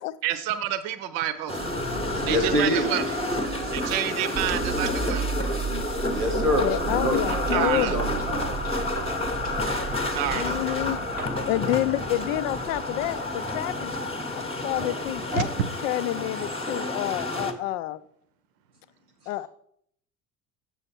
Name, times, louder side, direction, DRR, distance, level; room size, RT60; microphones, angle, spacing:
voice 1, 0.2-1.8 2.1-3.0 3.7-5.4 7.3-8.0 9.9-10.6, right 11 dB, 55° right, 13 dB, 0.8 m, -29 dB
sound 1, 1.5-17.5, left 2 dB, 15° left, 0.9 m, -30 dB
sound 2, 1.5-15.7, right 6 dB, 25° right, 0.5 m, -36 dB
voice 2, 2.2-2.9 6.1-9.1 9.4-9.5 11.2-11.3, left 1 dB, 90° right, 5 dB, 1.1 m, -27 dB
voice 3, 6.6-8.1 10.3-11.0 11.5-13.9 14.3-15.5 15.8-18.0 19.3-19.5, left 14 dB, 60° left, 15 dB, 0.5 m, -29 dB
7.0 x 6.9 x 4.3 m, 0.69 s
figure-of-eight pair, 55°, 45 cm